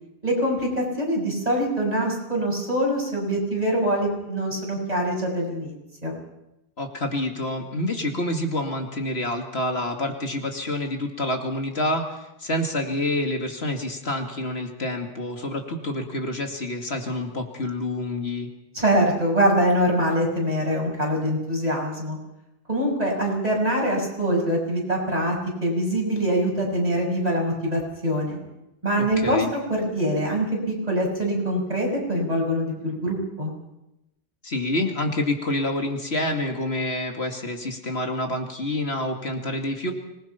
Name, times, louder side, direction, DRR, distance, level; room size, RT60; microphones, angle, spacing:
voice 1, 0.2-5.7 6.0-6.2 18.7-22.2 22.7-28.4 28.8-33.5, equal, 35° right, -1 dB, 6.5 m, -24 dB
voice 2, 6.8-18.5 29.0-29.5 34.4-39.9, left 1 dB, 70° left, 3 dB, 2.6 m, -28 dB
25.5 x 20.5 x 5.8 m, 0.89 s
omnidirectional pair, 1.1 m